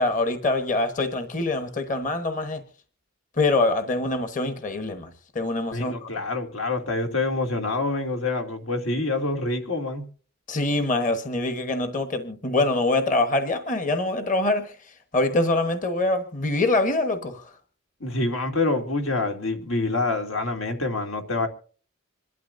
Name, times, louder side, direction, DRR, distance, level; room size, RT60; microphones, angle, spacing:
voice 1, 0.0-2.6 3.4-5.1 5.3-6.1 10.5-17.5, left 2 dB, 40° left, 1.2 m, -24 dB
voice 2, 5.7-10.0 18.0-21.5, left 2 dB, 90° left, 2.6 m, -26 dB
26.5 x 12.5 x 2.6 m
head